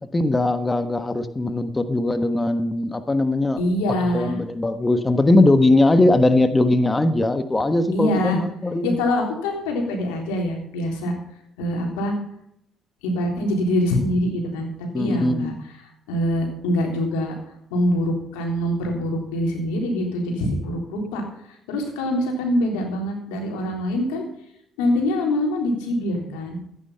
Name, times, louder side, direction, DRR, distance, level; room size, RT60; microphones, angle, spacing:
voice 1, 0.1-3.6 4.0-9.0 14.9-15.5, left 2 dB, 20° left, 10 dB, 1.3 m, -20 dB
voice 2, 3.6-4.4 7.9-8.4 8.8-11.1 11.6-12.2 13.0-15.5 16.1-17.3 17.7-21.2 21.5-24.2 24.8-26.6, left 1 dB, 90° left, 2 dB, 3.6 m, -24 dB
14.0 x 9.9 x 5.6 m, 0.72 s
supercardioid pair, 60°, 0 cm